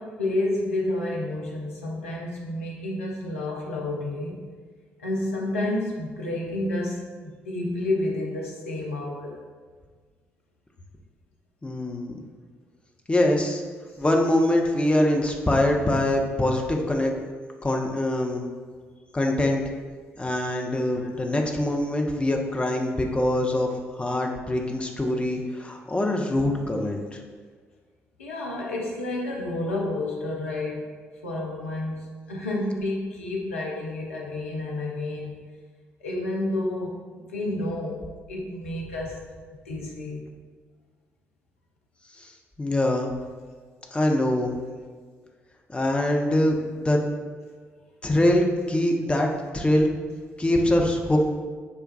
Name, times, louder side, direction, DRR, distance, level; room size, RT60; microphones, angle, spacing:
voice 1, 0.0-4.5 5.0-9.4 13.9-14.0 18.7-18.8 21.0-21.1 28.2-30.9 31.2-35.4 36.0-37.0 37.2-39.2 39.7-40.3, left 2 dB, 80° left, -2 dB, 0.4 m, -30 dB
voice 2, 11.6-12.2 13.1-13.6 14.0-17.1 17.6-18.5 19.1-19.6 20.2-27.2 42.2-42.3 42.6-43.1 43.9-44.5 45.7-46.6 46.8-47.0 48.0-49.9 50.4-51.2, left 1 dB, 15° left, 1 dB, 0.5 m, -23 dB
5.8 x 2.2 x 2.2 m, 1.5 s
figure-of-eight pair, 40°, 7 cm